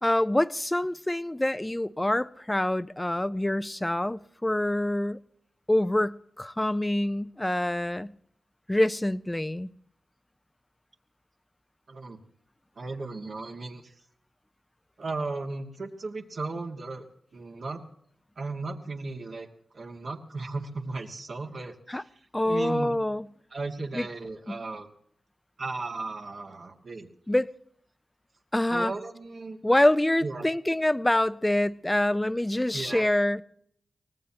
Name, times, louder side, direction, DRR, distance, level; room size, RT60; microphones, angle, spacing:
voice 1, 0.0-5.2 5.7-8.1 8.7-9.7 21.9-22.0 22.3-23.3 23.9-24.1 24.5-24.6 27.3-27.5 28.5-28.9 29.6-33.4, left 1 dB, 15° left, 0.7 m, -26 dB
voice 2, 11.9-12.2 12.8-13.9 15.0-17.0 17.3-17.8 18.4-19.5 19.7-22.1 22.4-22.9 23.5-24.9 25.6-27.1 28.7-29.6 30.2-30.5 32.7-33.1, right 3 dB, 65° right, 2.1 m, -36 dB
24.0 x 18.5 x 3.0 m
cardioid pair, 50°, 0 cm